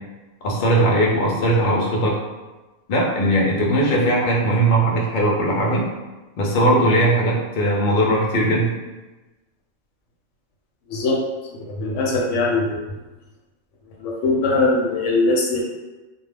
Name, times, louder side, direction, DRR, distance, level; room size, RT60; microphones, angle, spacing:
voice 1, 0.4-2.2 2.9-5.9 6.4-8.7, right 1 dB, 55° left, -3 dB, 0.6 m, -19 dB
voice 2, 10.9-11.2 11.5-12.8 14.0-15.6, left 3 dB, 75° left, -2 dB, 0.9 m, -21 dB
2.2 x 2.2 x 3.3 m, 1.2 s
omnidirectional pair, 1.3 m